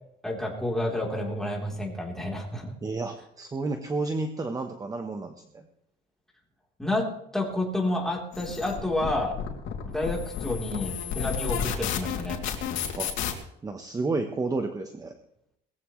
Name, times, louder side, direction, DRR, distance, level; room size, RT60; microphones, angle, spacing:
voice 1, 0.2-2.7 6.8-7.1 7.3-9.4 9.9-12.4, left 1 dB, ahead, -2 dB, 3.7 m, -29 dB
voice 2, 2.8-5.7 13.0-13.1 13.6-15.1, right 3 dB, 20° right, 6 dB, 1.1 m, -31 dB
sound 1, 8.3-13.3, left 8 dB, 85° left, 2.8 m, -32 dB
20.5 x 15.0 x 3.2 m, 0.75 s
cardioid pair, 155°, 19 cm